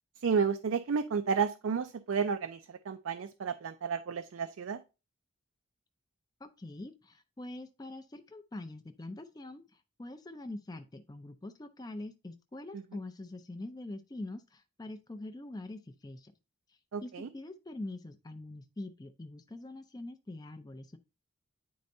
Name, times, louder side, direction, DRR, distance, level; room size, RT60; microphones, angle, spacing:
voice 1, 0.2-4.8 12.7-12.8 16.9-17.3, right 6 dB, 75° right, 8 dB, 0.4 m, -32 dB
voice 2, 6.4-16.3 16.7-21.0, left 2 dB, 20° left, 7 dB, 0.4 m, -44 dB
9.4 x 4.3 x 2.6 m, 0.30 s
head